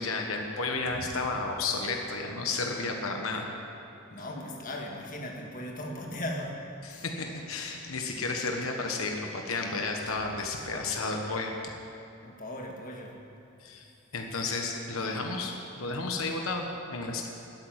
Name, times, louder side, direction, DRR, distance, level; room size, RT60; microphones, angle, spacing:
voice 1, 0.0-3.5 4.2-4.4 6.8-11.5 13.6-13.9 14.1-17.3, left 3 dB, 80° left, 2 dB, 1.3 m, -32 dB
voice 2, 4.1-6.6 6.9-7.0 12.2-13.2, left 1 dB, 40° left, 0 dB, 1.7 m, -38 dB
12.5 x 8.5 x 9.6 m, 2.8 s
head